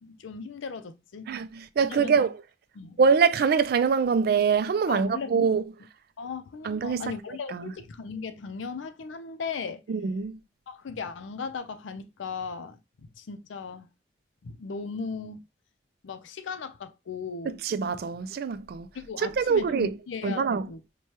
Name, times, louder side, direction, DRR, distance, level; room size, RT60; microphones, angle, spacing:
voice 1, 0.0-1.3 1.8-2.3 2.8-3.0 4.9-5.6 6.2-9.8 10.7-13.9 14.4-15.4 16.0-17.6 18.9-20.8, left 5 dB, 85° left, 0.5 m, -37 dB
voice 2, 1.3-2.4 3.0-5.6 6.6-7.0 7.5-7.7 9.9-10.3 17.6-18.9 19.2-19.9 20.2-20.7, right 5 dB, 55° right, 0.3 m, -24 dB
4.5 x 2.2 x 2.8 m
head